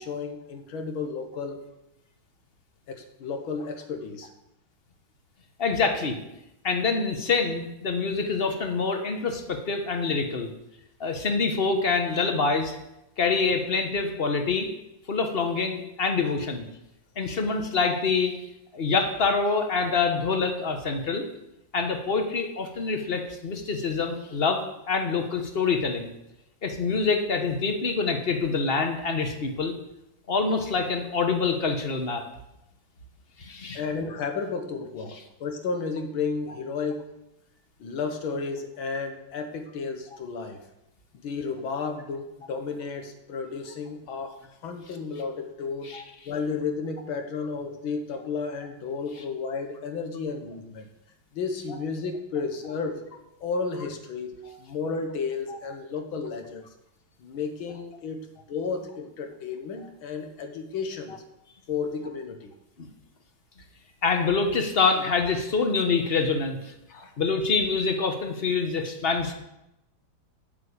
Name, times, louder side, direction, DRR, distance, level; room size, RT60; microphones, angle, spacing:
voice 1, 0.0-1.6 2.9-4.3 33.7-37.1 37.8-40.6 41.2-44.4 44.6-46.0 46.3-50.9 51.3-53.1 53.4-54.3 54.6-56.7 57.2-58.2 58.5-61.2 61.7-62.5 66.9-67.1, left 5 dB, 85° left, 6 dB, 2.0 m, -32 dB
voice 2, 5.6-6.2 6.6-10.5 11.0-12.8 13.2-14.7 15.1-16.7 17.2-18.3 18.7-21.3 21.7-26.1 26.6-29.7 30.3-32.2 33.4-33.8 45.8-46.0 54.5-54.6 55.5-55.6 62.8-62.9 64.0-66.7 67.2-69.3, left 4 dB, 35° left, 5 dB, 1.1 m, -26 dB
8.7 x 6.9 x 8.5 m, 0.89 s
omnidirectional pair, 2.2 m